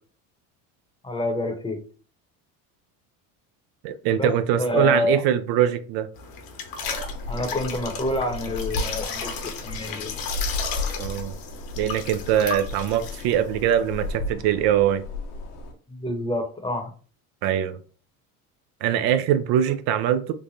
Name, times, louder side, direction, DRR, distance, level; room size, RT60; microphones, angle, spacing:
voice 1, 1.0-1.8 4.2-5.2 7.3-10.2 15.9-16.9, left 2 dB, 10° left, 4 dB, 0.8 m, -27 dB
voice 2, 3.8-6.1 11.0-11.3 11.8-15.0 17.4-17.8 18.8-20.3, right 10 dB, 60° right, 10 dB, 0.5 m, -22 dB
sound 1, 6.1-14.2, left 5 dB, 55° left, 1.0 m, -35 dB
sound 2, 6.8-15.7, left 2 dB, 75° left, 1.1 m, -34 dB
3.3 x 2.1 x 3.9 m, 0.40 s
supercardioid pair, 85°, 42 cm